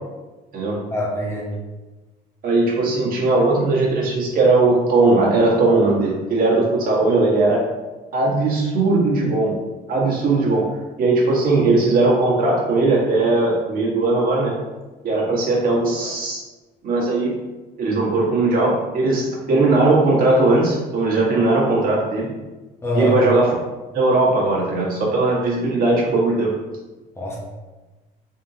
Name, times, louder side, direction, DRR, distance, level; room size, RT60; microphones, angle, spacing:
voice 1, 0.9-1.5 22.8-23.2 27.2-27.4, left 1 dB, 15° left, -3 dB, 0.9 m, -23 dB
voice 2, 2.4-7.6 8.1-9.6 9.9-10.7 11.0-14.5 15.0-16.4 16.8-17.4 17.8-22.3 22.9-23.5 23.9-26.5, right 2 dB, 60° right, -4 dB, 1.4 m, -18 dB
3.8 x 3.5 x 2.8 m, 1.2 s
cardioid pair, 110°, 17 cm